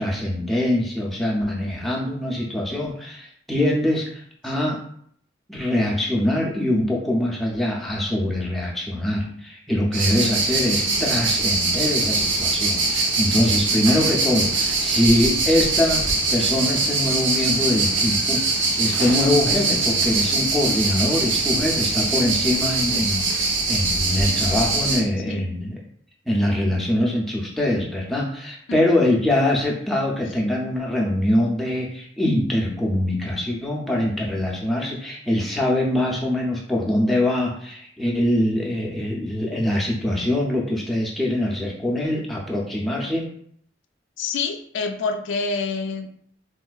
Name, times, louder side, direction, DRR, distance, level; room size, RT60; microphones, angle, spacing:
voice 1, 0.0-4.8 5.5-18.4 18.8-25.7 26.3-43.3, left 1 dB, ahead, -3 dB, 0.4 m, -23 dB
sound 1, 9.9-25.0, right 3 dB, 80° right, 0.6 m, -22 dB
voice 2, 44.2-46.1, left 4 dB, 80° left, 5 dB, 0.3 m, -27 dB
3.6 x 2.4 x 2.3 m, 0.65 s
head